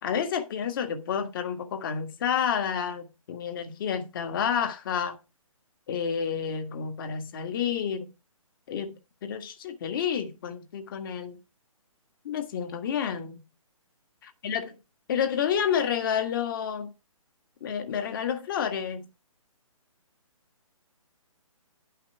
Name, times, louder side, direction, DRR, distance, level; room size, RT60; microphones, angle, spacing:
voice 1, 0.0-5.2 5.9-8.1 8.7-11.4 12.2-13.4 14.2-14.7 15.1-16.9 17.6-19.1, left 8 dB, 35° left, 1.6 m, -30 dB
11.0 x 5.8 x 4.5 m
figure-of-eight pair, 140°, 18 cm